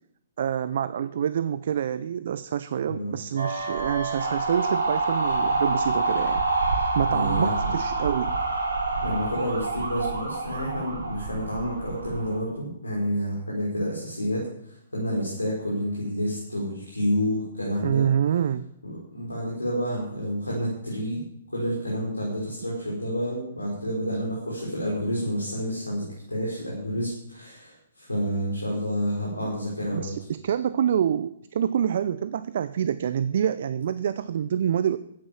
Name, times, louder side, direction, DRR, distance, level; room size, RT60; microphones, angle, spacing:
voice 1, 0.4-6.4 6.9-8.4 17.8-18.7 29.4-29.5 29.9-35.0, right 9 dB, 55° right, 15 dB, 0.6 m, -26 dB
sound 1, 3.4-12.4, right 3 dB, 70° right, 3.6 m, -27 dB
voice 2, 7.1-7.5 9.0-18.1 18.8-21.2 21.5-30.1, equal, 85° left, -4 dB, 5.3 m, -29 dB
15.5 x 9.4 x 7.3 m, 0.75 s
figure-of-eight pair, 120°, 0 cm